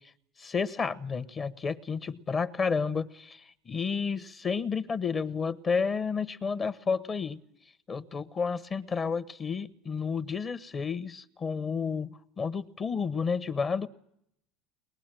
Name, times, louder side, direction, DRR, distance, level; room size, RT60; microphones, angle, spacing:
voice 1, 0.4-7.4 7.9-13.9, left 5 dB, 25° left, 0.9 m, -31 dB
22.0 x 20.5 x 9.0 m
supercardioid pair, 120°, 0 cm